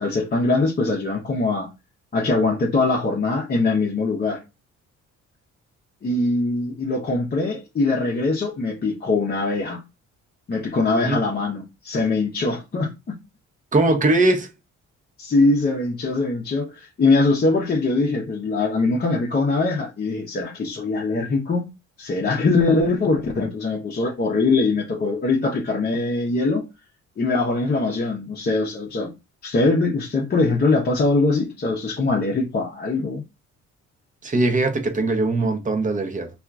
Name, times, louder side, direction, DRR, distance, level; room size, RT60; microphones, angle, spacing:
voice 1, 0.0-1.7 2.1-4.4 6.0-9.8 10.5-13.2 15.2-21.7 22.0-26.7 27.2-29.1 29.4-33.2, left 3 dB, 35° left, 0.7 m, -22 dB
voice 2, 13.7-14.5 34.2-36.3, right 2 dB, 25° right, 0.7 m, -20 dB
2.8 x 2.4 x 2.3 m
cardioid pair, 90°, 30 cm